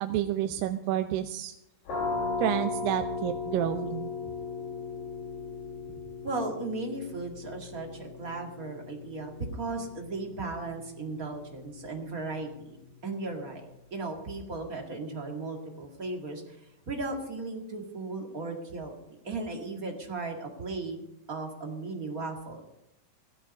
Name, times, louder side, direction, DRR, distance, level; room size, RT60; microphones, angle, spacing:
voice 1, 0.0-1.5 2.4-4.1, right 12 dB, 80° right, 8 dB, 2.3 m, -29 dB
sound 1, 1.9-13.4, left 4 dB, 65° left, 5.1 m, -38 dB
voice 2, 6.2-12.8 13.0-16.6 16.9-18.9 19.2-21.0 21.3-22.6, right 3 dB, 30° right, 2 dB, 1.7 m, -36 dB
16.5 x 13.5 x 5.3 m, 0.85 s
omnidirectional pair, 4.2 m